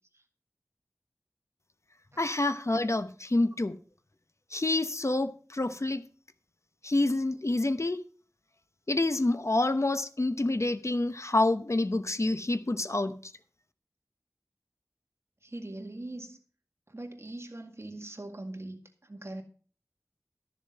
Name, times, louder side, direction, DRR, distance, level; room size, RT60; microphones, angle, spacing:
voice 1, 2.2-3.8 4.5-6.0 6.8-8.0 8.9-13.2, left 2 dB, 55° left, 0.8 m, -27 dB
voice 2, 15.4-16.4 16.9-18.8 19.1-19.4, right 1 dB, 50° right, 2.0 m, -41 dB
13.0 x 7.0 x 5.5 m
wide cardioid pair, 50°, 6 cm